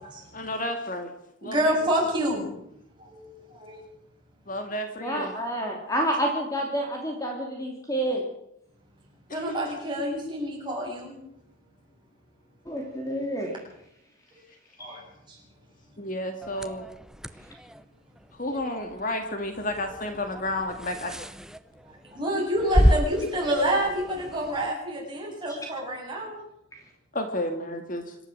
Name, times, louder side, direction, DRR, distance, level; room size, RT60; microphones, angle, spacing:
voice 1, 0.3-1.1 1.4-1.8 4.5-5.3 9.3-9.5 16.0-16.9 18.3-21.2 27.1-28.2, left 1 dB, 40° left, 6 dB, 2.2 m, -31 dB
voice 2, 1.4-2.5 3.0-3.8 9.3-11.1 14.8-15.4 18.5-18.6 21.9-26.4, equal, 20° right, -2 dB, 7.9 m, -28 dB
voice 3, 5.0-8.2 12.7-13.5 14.8-14.9, right 1 dB, 15° left, 1 dB, 2.9 m, -29 dB
sound 1, 16.4-24.7, equal, 5° right, 0.7 m, -30 dB
26.5 x 12.5 x 7.7 m, 0.78 s
head